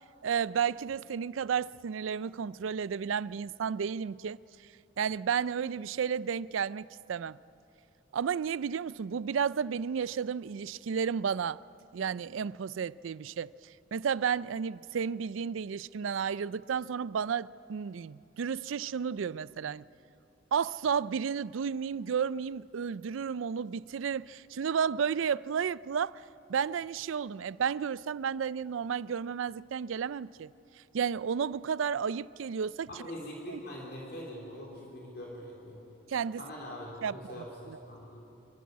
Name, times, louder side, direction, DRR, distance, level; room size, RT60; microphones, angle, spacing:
voice 1, 0.2-4.4 5.0-7.4 8.1-11.6 11.9-13.5 13.9-19.8 20.5-26.2 26.5-30.5 30.9-32.9 33.5-33.6 36.1-36.4 37.0-37.3 37.7-37.8, right 7 dB, 90° right, 0.4 m, -32 dB
voice 2, 32.9-35.8 36.4-38.2, equal, 50° left, 3.4 m, -43 dB
26.0 x 13.5 x 9.4 m
head